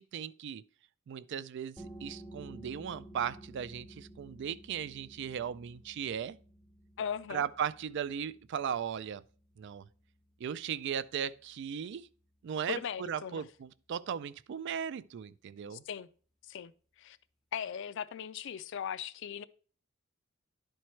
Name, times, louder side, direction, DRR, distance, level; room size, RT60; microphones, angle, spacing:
voice 1, 0.1-0.6 1.1-6.4 7.3-9.2 9.6-9.9 10.4-12.1 12.4-15.8, right 8 dB, 55° right, 0.3 m, -37 dB
sound 1, 1.8-13.1, right 1 dB, ahead, 0.6 m, -54 dB
voice 2, 7.0-7.4 12.7-13.4 15.7-16.1 16.4-16.7 17.0-17.2 17.5-19.4, left 8 dB, 60° left, 0.4 m, -38 dB
11.0 x 4.4 x 3.1 m
head